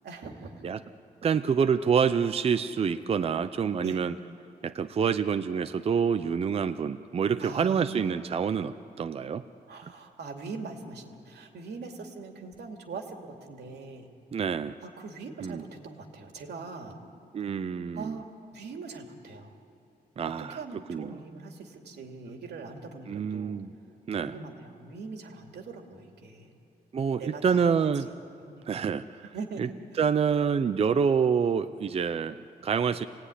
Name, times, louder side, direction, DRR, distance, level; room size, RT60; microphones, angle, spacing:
voice 1, 0.0-0.6 3.8-4.0 7.4-8.1 9.7-14.1 14.8-17.0 17.9-18.3 18.5-19.5 20.4-23.6 24.2-26.5 27.2-27.9 28.5-28.6 29.3-29.6, right 4 dB, 90° right, 3 dB, 2.8 m, -42 dB
voice 2, 1.2-4.2 4.6-9.5 9.8-9.9 14.3-14.8 15.4-15.6 17.3-18.2 20.2-21.2 23.1-23.7 24.1-24.4 26.9-28.1 28.7-29.3 29.6-29.7 29.9-33.1, right 6 dB, 35° right, 11 dB, 0.5 m, -27 dB
27.5 x 18.5 x 9.9 m, 2.6 s
wide cardioid pair, 155°, 17 cm